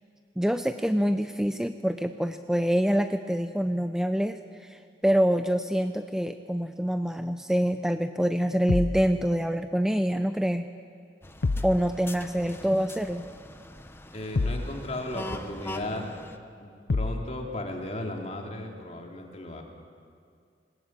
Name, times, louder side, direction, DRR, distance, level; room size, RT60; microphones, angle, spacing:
voice 1, 0.4-10.7 11.6-13.2, equal, 5° right, 8 dB, 0.5 m, -26 dB
sound 1, 8.7-9.1 11.4-11.8 14.3-14.7 16.9-17.3, left 3 dB, 65° left, 0.6 m, -27 dB
sound 2, 11.2-16.4, left 1 dB, 15° left, 0.9 m, -42 dB
voice 2, 14.1-16.1 16.6-19.6, left 1 dB, 40° left, 1 dB, 3.0 m, -35 dB
20.5 x 20.0 x 8.7 m, 2.3 s
head